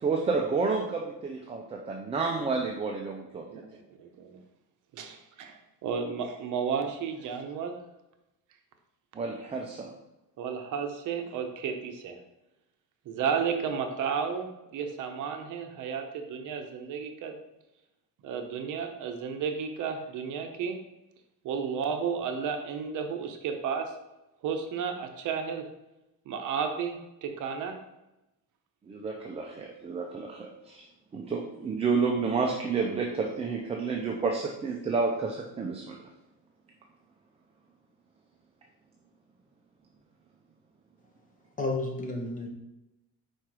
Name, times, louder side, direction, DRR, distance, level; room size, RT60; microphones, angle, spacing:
voice 1, 0.0-3.5 9.1-9.9 28.9-30.9 31.1-36.0, right 4 dB, 15° right, 0 dB, 0.4 m, -30 dB
voice 2, 3.5-4.4 4.9-7.7 10.4-12.2 13.1-17.3 18.2-20.8 21.4-23.9 24.4-25.6 26.3-27.8, right 6 dB, 55° right, 5 dB, 0.8 m, -33 dB
voice 3, 41.6-42.5, left 2 dB, 20° left, 0 dB, 0.9 m, -31 dB
4.8 x 4.5 x 4.7 m, 0.94 s
cardioid pair, 170°, 37 cm